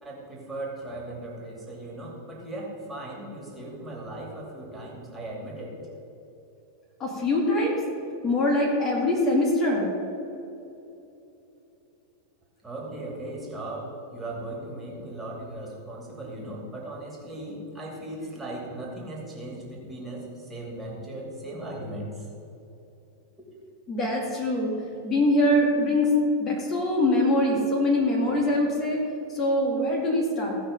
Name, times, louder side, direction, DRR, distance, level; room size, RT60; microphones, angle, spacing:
voice 1, 0.0-5.8 12.6-22.3 23.4-23.5, right 1 dB, 10° right, -3 dB, 2.7 m, -37 dB
voice 2, 7.0-7.8 8.2-9.9 23.9-24.7 25.0-29.0 29.3-30.6, left 1 dB, 30° left, -1 dB, 2.3 m, -23 dB
16.5 x 5.9 x 5.2 m, 2.9 s
figure-of-eight pair, 90°, 0 cm